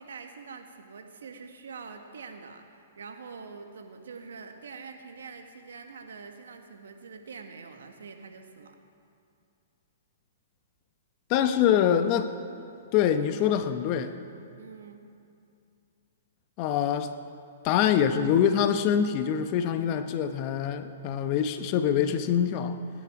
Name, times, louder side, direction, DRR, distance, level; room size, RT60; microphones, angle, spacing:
voice 1, 0.0-8.8 14.6-15.0, right 5 dB, 80° right, 5 dB, 1.4 m, -45 dB
voice 2, 11.3-12.3 12.9-14.1 16.6-17.1 17.6-22.8, left 9 dB, 40° left, 9 dB, 0.9 m, -24 dB
19.5 x 9.3 x 4.8 m, 2.5 s
hypercardioid pair, 135°, 0 cm